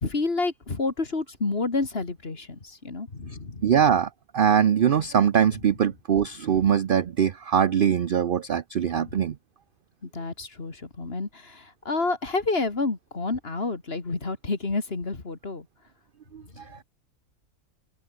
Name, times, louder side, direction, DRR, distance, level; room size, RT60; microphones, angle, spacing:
voice 1, 0.0-3.6 8.9-9.2 10.0-15.7, left 3 dB, 45° left, 2.6 m, -29 dB
voice 2, 3.6-9.4 16.3-16.8, right 8 dB, 50° right, 0.7 m, -22 dB
omnidirectional pair, 1.4 m